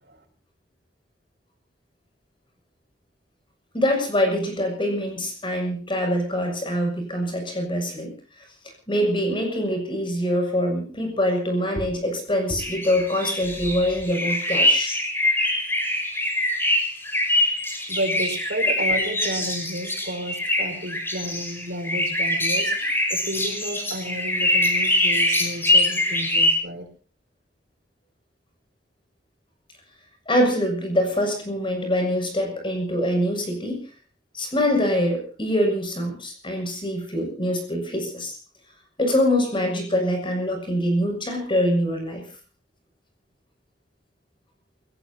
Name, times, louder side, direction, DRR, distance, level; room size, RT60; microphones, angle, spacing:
voice 1, 3.7-8.1 8.9-15.0 30.3-33.8 34.3-38.4 39.0-42.3, equal, 30° left, 3 dB, 7.0 m, -24 dB
sound 1, 12.6-26.6, left 1 dB, 15° left, 5.4 m, -23 dB
voice 2, 17.9-26.9, right 1 dB, 70° right, 5 dB, 5.3 m, -32 dB
28.5 x 17.5 x 2.9 m, 0.36 s
head